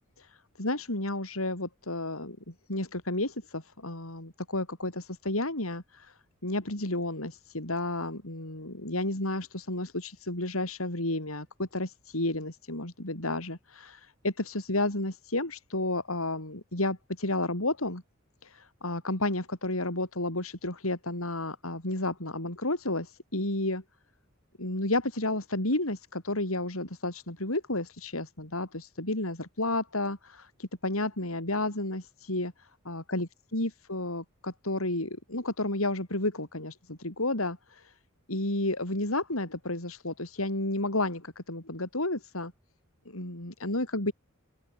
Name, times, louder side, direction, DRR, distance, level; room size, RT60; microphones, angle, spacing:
voice 1, 0.2-18.0 18.4-23.8 24.6-37.9 38.3-42.5 43.1-44.1, left 2 dB, 85° left, 6.1 m, -32 dB
open air
head